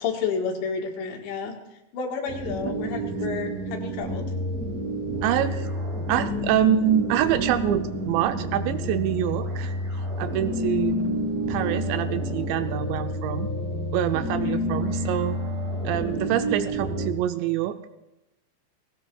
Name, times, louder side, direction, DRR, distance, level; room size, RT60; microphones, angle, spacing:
voice 1, 0.0-1.5 1.9-4.3 14.4-14.6 16.1-16.2, left 6 dB, 75° left, 2 dB, 3.5 m, -30 dB
sound 1, 2.3-17.1, equal, 25° right, 3.5 m, -29 dB
voice 2, 2.8-3.2 5.2-5.7 6.1-9.7 10.2-11.0 11.5-13.5 13.9-15.4 15.8-17.8, right 11 dB, 80° right, 9 dB, 2.7 m, -25 dB
19.5 x 17.5 x 2.3 m, 0.93 s
omnidirectional pair, 5.5 m